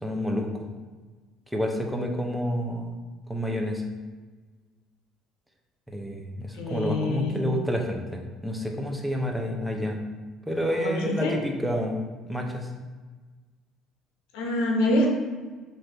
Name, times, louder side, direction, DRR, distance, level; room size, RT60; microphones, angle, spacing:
voice 1, 0.0-0.7 1.5-2.9 3.3-3.8 5.9-10.0 10.5-12.0 12.3-12.7, equal, ahead, 1 dB, 0.6 m, -29 dB
voice 2, 6.5-7.4 10.7-11.4 14.3-15.1, left 1 dB, 85° left, 0 dB, 0.7 m, -26 dB
3.1 x 2.6 x 4.4 m, 1.4 s
supercardioid pair, 95°, 0 cm